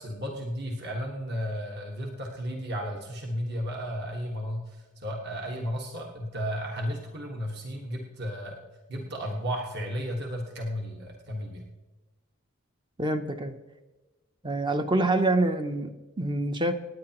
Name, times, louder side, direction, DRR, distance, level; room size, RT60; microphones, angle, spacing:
voice 1, 0.0-8.6 8.9-11.6, equal, 50° right, 0 dB, 1.5 m, -34 dB
voice 2, 13.0-13.5 14.4-16.7, right 2 dB, 20° right, 7 dB, 0.6 m, -26 dB
26.5 x 9.6 x 2.9 m, 1.2 s
head